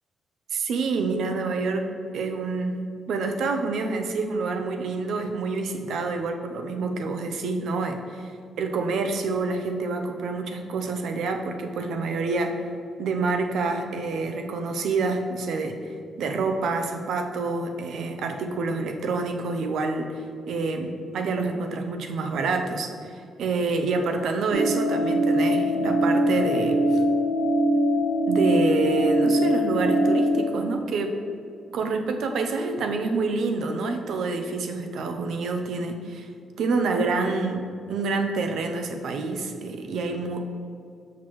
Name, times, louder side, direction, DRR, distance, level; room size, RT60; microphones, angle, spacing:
voice 1, 0.5-1.9 2.1-2.8 3.1-8.3 8.6-12.6 13.0-27.0 28.3-31.2 31.7-36.3 36.6-40.5, right 3 dB, 65° right, 5 dB, 0.5 m, -27 dB
sound 1, 24.5-30.3, equal, 45° right, 1.4 m, -22 dB
6.0 x 5.9 x 3.0 m, 2.5 s
cardioid pair, 155°, 0 cm